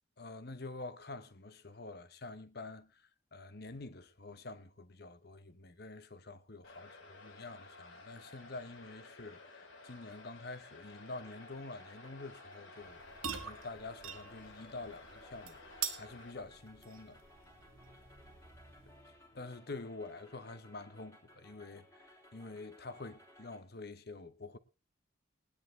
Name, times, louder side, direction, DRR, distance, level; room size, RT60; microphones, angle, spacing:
voice 1, 0.2-17.2 18.9-22.1 22.3-24.6, left 3 dB, 50° left, 1.0 m, -47 dB
sound 1, 6.6-16.3, left 3 dB, 75° left, 2.2 m, -54 dB
sound 2, 10.8-23.6, equal, 15° left, 2.2 m, -61 dB
sound 3, 12.8-19.2, right 7 dB, 90° right, 1.9 m, -46 dB
20.5 x 10.0 x 3.2 m
head